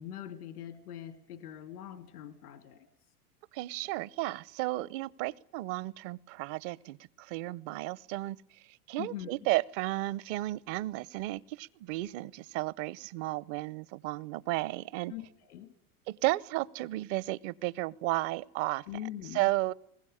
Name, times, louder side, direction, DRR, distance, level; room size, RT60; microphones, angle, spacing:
voice 1, 0.0-2.9 9.0-9.3 15.1-15.7 18.9-19.5, left 11 dB, 85° left, 11 dB, 2.5 m, -42 dB
voice 2, 3.5-15.1 16.1-19.0 19.3-19.7, right 18 dB, 55° right, 22 dB, 0.8 m, -33 dB
21.5 x 19.0 x 9.9 m, 0.76 s
supercardioid pair, 115°, 44 cm